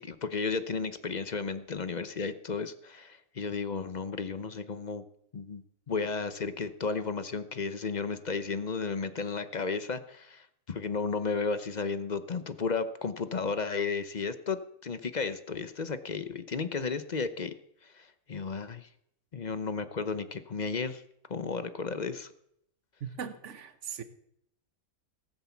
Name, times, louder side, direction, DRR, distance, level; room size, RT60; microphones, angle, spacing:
voice 1, 0.0-5.0 5.3-5.6 5.9-17.5 17.8-18.9 19.3-21.0 21.3-22.3, left 4 dB, 40° left, 0.7 m, -33 dB
voice 2, 23.0-24.0, right 7 dB, 55° right, 1.3 m, -39 dB
18.5 x 7.8 x 7.2 m
omnidirectional pair, 1.6 m